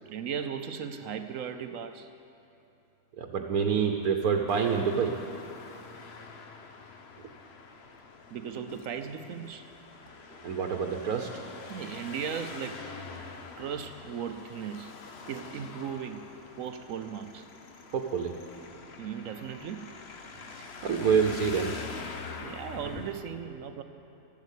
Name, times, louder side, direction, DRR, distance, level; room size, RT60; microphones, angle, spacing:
voice 1, 0.1-2.1 8.3-9.7 11.7-12.9 13.6-14.9 15.3-16.3 16.6-17.5 19.0-19.9 22.4-23.8, right 7 dB, 70° right, 8 dB, 1.0 m, -37 dB
voice 2, 3.2-5.2 10.4-11.3 17.9-18.3 20.6-21.7, right 6 dB, 90° right, 2 dB, 1.4 m, -27 dB
Traffic noise roadway noise, 4.5-23.2, left 4 dB, 50° left, 1.1 m, -45 dB
13.5 x 12.5 x 8.2 m, 2.9 s
omnidirectional pair, 1.5 m